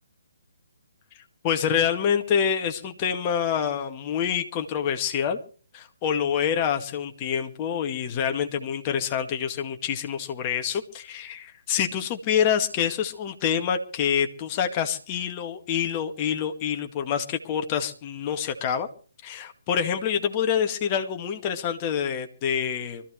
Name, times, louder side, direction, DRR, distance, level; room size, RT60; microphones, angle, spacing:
voice 1, 1.4-5.4 5.7-18.9 19.2-23.0, left 8 dB, 25° left, 6 dB, 2.0 m, -26 dB
25.0 x 14.5 x 3.2 m, 0.40 s
figure-of-eight pair, 135°, 0 cm